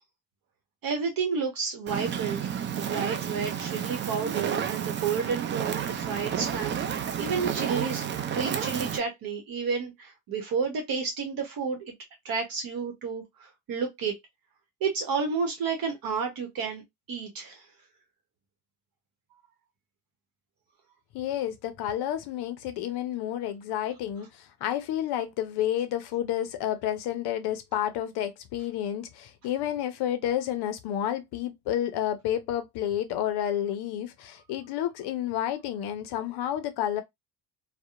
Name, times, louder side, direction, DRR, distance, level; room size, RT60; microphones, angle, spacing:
voice 1, 0.8-11.9 12.2-14.1 14.8-16.8 17.1-17.6, right 5 dB, 50° right, 0.9 m, -31 dB
Fire, 1.9-9.0, right 8 dB, 30° right, 0.3 m, -31 dB
voice 2, 21.1-37.0, left 11 dB, 60° left, 0.6 m, -30 dB
2.7 x 2.1 x 2.3 m
supercardioid pair, 90°, 44 cm